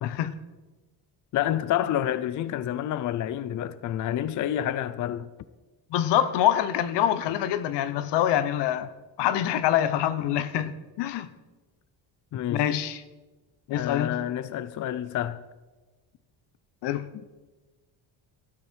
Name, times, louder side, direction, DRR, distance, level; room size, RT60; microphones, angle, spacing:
voice 1, 0.0-0.4 5.9-8.9 9.2-11.3 12.5-13.0 13.7-14.2 16.8-17.1, left 11 dB, 85° left, 1.2 m, -25 dB
voice 2, 1.3-5.3 12.3-12.7 13.7-15.4, left 11 dB, 45° left, 0.6 m, -29 dB
20.5 x 13.5 x 4.6 m
cardioid pair, 160°, 41 cm